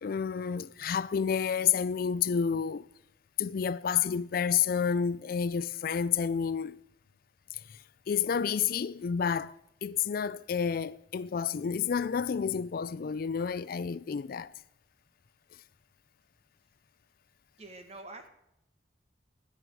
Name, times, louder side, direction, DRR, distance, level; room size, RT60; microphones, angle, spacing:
voice 1, 0.0-2.8 3.4-6.8 8.1-9.5 9.8-14.5, left 7 dB, 55° left, 0.4 m, -30 dB
voice 2, 17.6-18.3, right 2 dB, 40° right, 1.6 m, -46 dB
20.5 x 7.9 x 4.7 m
head